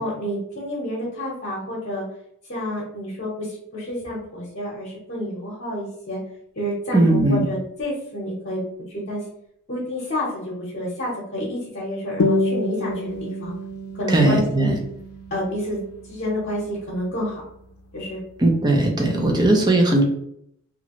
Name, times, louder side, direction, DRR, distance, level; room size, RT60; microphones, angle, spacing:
voice 1, 0.0-2.0 2.5-6.2 6.6-8.6 8.9-9.2 9.7-13.5 13.9-14.7 15.3-17.4 17.9-18.2 19.1-19.3, equal, 45° left, -6 dB, 0.9 m, -29 dB
voice 2, 6.9-7.5 14.1-14.8 18.4-20.0, right 2 dB, 20° right, 1 dB, 0.5 m, -18 dB
sound 1, 12.2-17.2, left 2 dB, 85° left, 0.5 m, -28 dB
3.0 x 2.5 x 2.9 m, 0.72 s
head